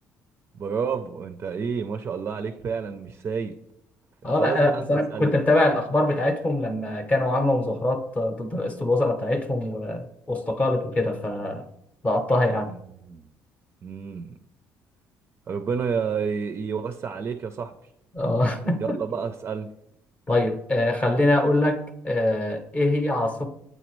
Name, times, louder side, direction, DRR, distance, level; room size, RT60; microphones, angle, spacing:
voice 1, 0.5-3.5 4.2-5.4 12.7-13.3 13.8-14.4 15.5-17.9 18.8-19.7, right 6 dB, 40° right, 8 dB, 0.4 m, -30 dB
voice 2, 4.2-11.7 12.0-12.7 18.1-19.0 20.3-23.5, left 1 dB, 20° left, 6 dB, 0.7 m, -23 dB
8.0 x 4.1 x 3.1 m, 0.77 s
cardioid pair, 105°, 6 cm